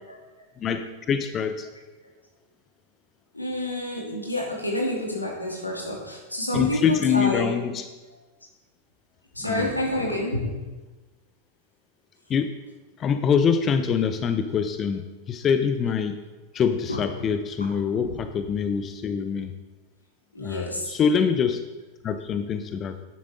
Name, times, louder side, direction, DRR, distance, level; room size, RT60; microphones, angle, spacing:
voice 1, 0.6-1.7 6.5-7.9 9.4-9.7 12.3-12.5 13.0-16.2 16.5-19.5 20.4-21.6 22.0-23.0, left 7 dB, 25° left, 9 dB, 0.7 m, -25 dB
voice 2, 3.3-7.5 9.3-10.5 16.9-17.0 20.3-20.9, left 1 dB, 85° left, -2 dB, 2.7 m, -28 dB
11.0 x 10.0 x 3.7 m, 1.2 s
figure-of-eight pair, 90°, 0 cm